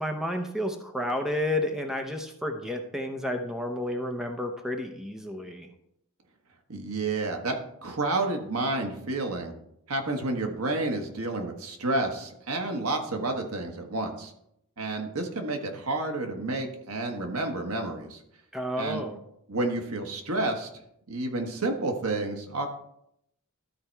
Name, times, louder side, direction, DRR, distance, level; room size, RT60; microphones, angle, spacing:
voice 1, 0.0-5.7 18.5-19.2, left 1 dB, ahead, 4 dB, 0.7 m, -31 dB
voice 2, 6.7-7.6 7.8-9.5 9.9-14.3 14.8-18.2 18.8-19.0 19.5-20.7 21.1-22.7, right 2 dB, 80° right, 3 dB, 1.3 m, -30 dB
12.5 x 4.3 x 4.5 m, 0.76 s
head